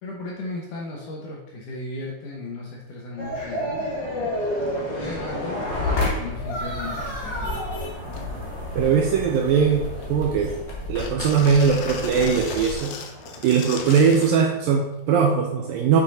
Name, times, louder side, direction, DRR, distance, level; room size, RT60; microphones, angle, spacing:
voice 1, 0.0-5.6 6.0-7.9, left 2 dB, 65° left, -2 dB, 2.2 m, -36 dB
sound 1, 3.2-14.5, left 1 dB, 45° left, 1.4 m, -31 dB
sound 2, 5.4-12.8, left 2 dB, 55° right, 1.1 m, -37 dB
sound 3, 6.5-6.6 6.9-7.5 8.0-8.3 8.8-9.2 9.7-10.5 11.0-14.4 15.4-15.5, left 6 dB, 90° left, 3.0 m, -38 dB
voice 2, 8.8-10.5 10.9-13.0 13.4-16.0, right 6 dB, 80° right, 2 dB, 2.1 m, -20 dB
8.0 x 5.9 x 4.2 m, 0.92 s
omnidirectional pair, 4.7 m